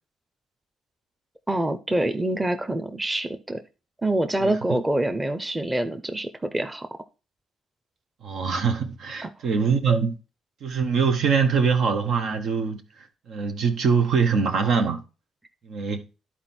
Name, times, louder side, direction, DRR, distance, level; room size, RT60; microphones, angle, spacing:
voice 1, 1.5-3.6 4.0-6.9 9.2-9.3, right 1 dB, 15° right, 0.9 m, -26 dB
voice 2, 8.2-10.2 10.6-12.8 13.3-15.0 15.7-16.0, right 5 dB, 70° right, 1.3 m, -23 dB
11.0 x 4.4 x 4.5 m
supercardioid pair, 75°, 0 cm